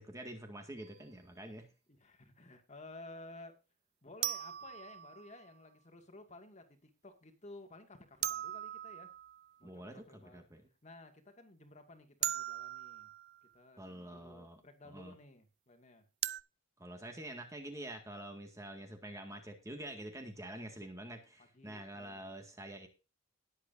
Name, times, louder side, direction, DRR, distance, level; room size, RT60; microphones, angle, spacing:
voice 1, 0.0-1.7 9.6-10.7 13.8-15.1 16.8-22.9, right 1 dB, 15° right, 4 dB, 2.0 m, -47 dB
sound 1, 0.8-0.9 4.2-5.5 8.2-9.6 12.2-13.5 16.2-16.4, right 13 dB, 45° right, 0.5 m, -39 dB
voice 2, 1.9-3.6 4.0-9.1 9.6-10.4 10.8-13.1 13.5-16.1 21.5-22.3, left 2 dB, 30° left, 6 dB, 2.2 m, -54 dB
19.5 x 8.1 x 2.7 m, 0.30 s
head